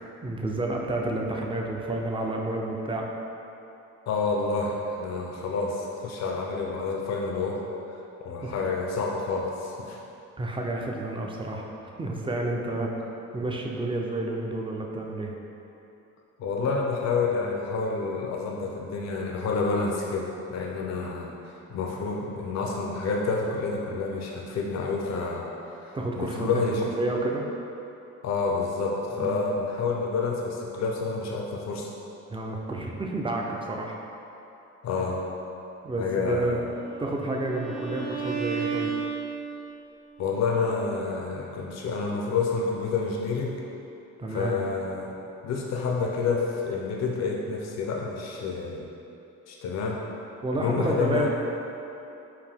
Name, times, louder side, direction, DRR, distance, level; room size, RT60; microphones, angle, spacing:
voice 1, 0.2-3.1 8.4-8.5 10.4-11.7 12.0-12.9 13.3-15.3 25.9-27.5 29.2-29.5 32.3-34.0 35.8-36.6 37.0-38.9 44.2-44.6 50.4-51.3, right 2 dB, 15° right, 0 dB, 0.5 m, -30 dB
voice 2, 4.1-7.6 8.2-10.0 16.4-21.3 21.7-25.5 25.8-26.9 28.2-31.9 34.8-35.2 36.0-36.6 40.2-43.6 44.3-45.2 45.4-48.9 49.5-50.0 50.5-51.3, left 4 dB, 60° left, -1 dB, 0.6 m, -28 dB
Bowed string instrument, 36.7-39.8, right 6 dB, 70° right, 0.9 m, -33 dB
4.8 x 2.7 x 3.4 m, 2.9 s
cardioid pair, 90°, 30 cm